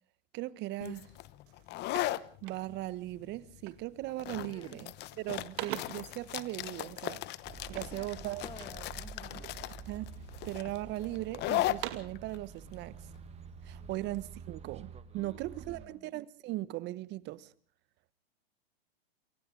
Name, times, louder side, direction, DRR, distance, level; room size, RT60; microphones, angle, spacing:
voice 1, 0.3-1.1 2.4-4.9 5.2-7.2 7.7-8.4 9.3-9.4 9.9-10.0 10.4-13.0 13.6-17.5, right 16 dB, 35° right, 1.0 m, -38 dB
sound 1, 0.8-14.2, left 16 dB, 35° left, 1.0 m, -38 dB
sound 2, 1.0-1.2 1.5-3.0 3.6-4.0 4.3-4.8 5.1-6.2 7.7-8.9 9.4-10.0 10.5-11.2 11.6-12.3, right 15 dB, 60° right, 2.3 m, -44 dB
voice 2, 4.5-4.8 7.7-9.5 13.8-14.0 15.1-16.1, left 5 dB, 15° left, 1.9 m, -52 dB
sound 3, 7.4-15.9, right 6 dB, 20° right, 1.7 m, -48 dB
28.5 x 24.5 x 3.9 m
hypercardioid pair, 110°, 30 cm